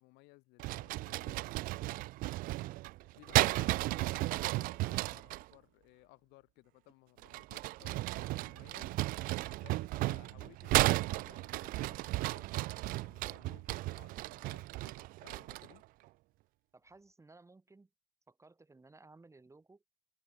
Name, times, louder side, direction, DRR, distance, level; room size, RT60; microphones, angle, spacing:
voice 1, 0.0-1.5 3.1-8.9 9.5-12.5 12.8-15.8, left 24 dB, 60° left, 1.7 m, -61 dB
sound 1, 0.6-5.4 7.2-15.8, right 19 dB, 45° right, 0.4 m, -34 dB
voice 2, 16.7-17.9 18.3-19.8, right 3 dB, 15° right, 4.1 m, -59 dB
figure-of-eight pair, 65°, 20 cm